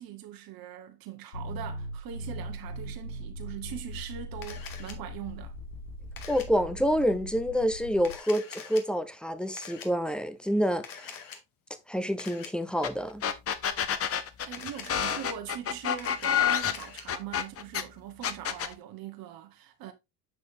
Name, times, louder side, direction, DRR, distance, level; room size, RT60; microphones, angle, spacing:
voice 1, 0.0-5.5 14.5-19.9, right 10 dB, 50° right, 1.5 m, -41 dB
sound 1, 1.3-8.2, equal, 85° left, 1.6 m, -40 dB
Camera, 4.4-4.9 6.2-6.5 8.0-8.8 9.6-9.9 10.8-11.4 12.2-12.5 14.5-15.3 15.8-17.0, left 7 dB, 45° left, 1.7 m, -44 dB
voice 2, 6.3-11.2 11.9-13.2, equal, ahead, 0.9 m, -28 dB
sound 2, 12.8-12.9 13.2-17.8 18.2-18.7, left 8 dB, 30° left, 0.8 m, -28 dB
7.1 x 6.2 x 2.7 m
hypercardioid pair, 70°, 46 cm